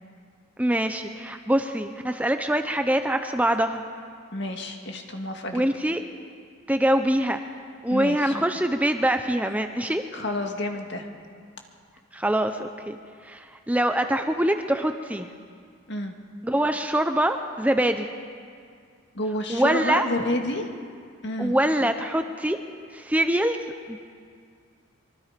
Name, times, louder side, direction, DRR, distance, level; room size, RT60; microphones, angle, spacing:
voice 1, 0.6-3.8 5.5-6.0 6.7-7.4 7.8-10.0 12.1-13.0 13.2-15.3 16.4-18.1 19.5-20.1 21.4-22.6 22.9-23.6 23.9-24.0, right 1 dB, 5° right, 7 dB, 0.7 m, -24 dB
voice 2, 4.3-5.7 7.9-8.3 10.1-11.1 15.9-16.1 19.1-20.7 21.2-21.6, left 1 dB, 55° left, 3 dB, 2.2 m, -29 dB
25.0 x 23.5 x 5.2 m, 2.1 s
head